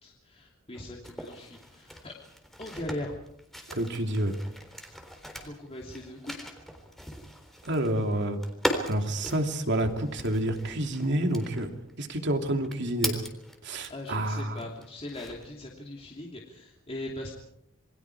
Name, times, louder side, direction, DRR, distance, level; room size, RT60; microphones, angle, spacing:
voice 1, 0.0-2.1 2.6-3.2 5.4-6.5 13.9-17.3, left 1 dB, 30° left, -1 dB, 2.9 m, -40 dB
sound 1, 0.7-14.1 14.6-15.6, equal, ahead, 3.8 m, -39 dB
voice 2, 3.7-4.4 7.6-8.4 8.8-11.7 12.0-13.2 13.6-14.6, right 1 dB, 55° right, 5 dB, 2.8 m, -28 dB
28.0 x 23.5 x 4.9 m, 0.75 s
head